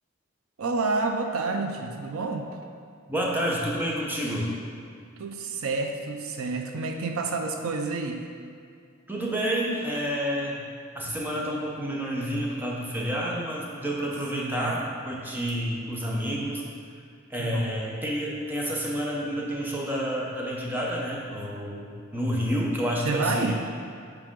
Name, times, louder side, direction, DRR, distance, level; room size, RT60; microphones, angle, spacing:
voice 1, 0.6-2.5 5.2-8.2 14.4-14.8 17.4-17.8 23.0-23.5, right 3 dB, 80° right, 4 dB, 0.5 m, -29 dB
voice 2, 3.1-4.5 9.1-10.6 10.9-16.6 17.3-23.5, equal, 10° right, -4 dB, 0.9 m, -29 dB
7.6 x 4.9 x 3.7 m, 2.3 s
head